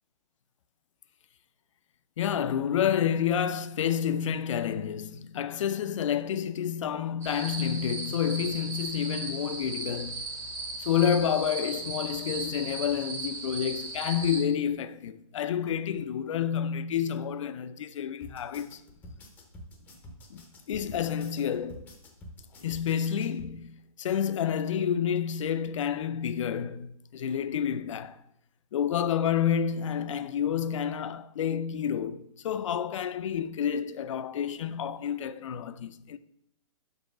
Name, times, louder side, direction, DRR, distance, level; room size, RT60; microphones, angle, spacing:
voice 1, 2.2-10.2 10.8-18.8 20.3-21.8 22.6-28.2 28.7-36.2, left 8 dB, 55° left, 0.5 m, -29 dB
sound 1, 7.2-14.4, right 3 dB, 15° right, 0.9 m, -37 dB
sound 2, 18.2-23.5, left 1 dB, 10° left, 0.7 m, -48 dB
5.6 x 5.4 x 5.0 m
hypercardioid pair, 160°, 19 cm